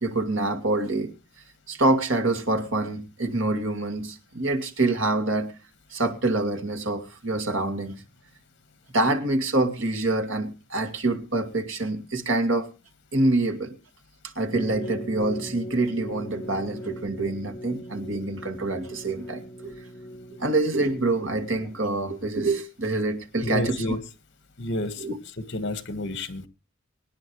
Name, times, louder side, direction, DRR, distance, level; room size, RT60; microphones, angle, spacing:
voice 1, 0.0-1.1 1.7-5.5 5.9-8.0 8.9-12.7 13.1-13.7 14.4-19.8 20.4-23.8 25.0-25.2, right 2 dB, 80° right, 2.5 m, -26 dB
sound 1, 14.5-22.0, equal, 15° left, 3.2 m, -39 dB
voice 2, 23.4-24.0 24.6-25.0 25.5-26.5, left 1 dB, 60° left, 1.6 m, -29 dB
24.5 x 9.9 x 3.2 m
head